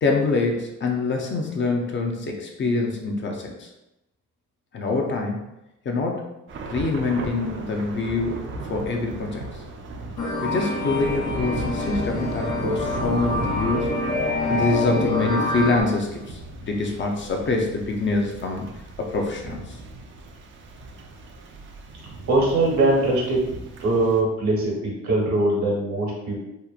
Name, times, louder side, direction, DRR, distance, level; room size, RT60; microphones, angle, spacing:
voice 1, 0.0-3.7 4.7-5.4 5.9-6.3 6.7-8.4 8.7-9.4 10.4-13.9 14.5-18.7 19.0-19.8, left 3 dB, 40° left, 1 dB, 0.5 m, -25 dB
Thunder / Rain, 6.5-24.2, right 3 dB, 40° right, 0.4 m, -36 dB
sound 1, 10.2-15.8, left 2 dB, 75° left, 0.8 m, -27 dB
voice 2, 22.3-23.4 23.8-26.4, right 2 dB, 75° right, -3 dB, 1.0 m, -21 dB
2.8 x 2.1 x 2.4 m, 0.92 s
cardioid pair, 90°, 30 cm